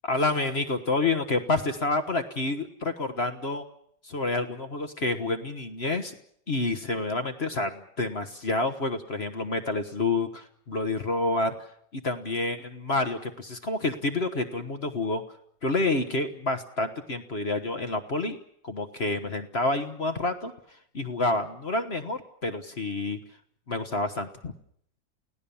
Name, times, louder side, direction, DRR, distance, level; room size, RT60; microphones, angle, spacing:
voice 1, 0.0-3.6 4.0-6.1 6.5-11.5 11.9-15.2 15.6-18.4 18.6-20.5 20.9-23.2 23.7-24.5, left 2 dB, 40° left, 8 dB, 1.4 m, -28 dB
29.0 x 17.0 x 7.1 m, 0.67 s
omnidirectional pair, 1.9 m